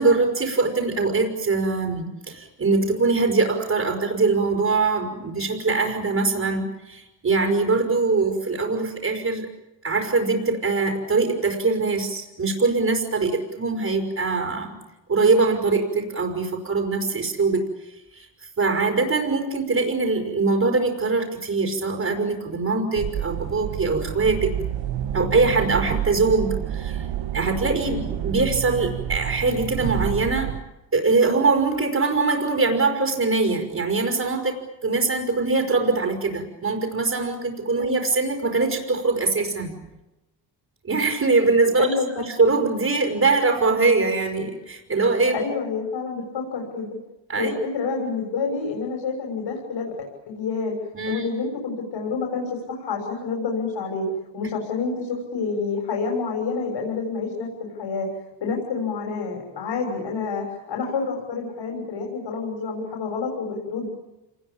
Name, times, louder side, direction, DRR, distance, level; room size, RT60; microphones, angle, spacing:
voice 1, 0.0-9.5 9.8-14.8 15.1-17.7 18.1-18.3 18.6-24.5 25.1-27.1 27.3-30.5 30.9-39.8 40.8-41.9 42.2-45.4 47.3-47.6 50.9-51.3, right 3 dB, 35° right, 2 dB, 5.2 m, -22 dB
sound 1, 23.0-30.6, right 11 dB, 75° right, 1.5 m, -29 dB
voice 2, 41.8-42.2 45.3-47.0 47.4-50.8 51.1-54.1 54.3-58.1 58.4-63.9, left 4 dB, 65° left, 0 dB, 6.8 m, -28 dB
27.5 x 20.5 x 8.8 m, 1.0 s
cardioid pair, 95°, 45 cm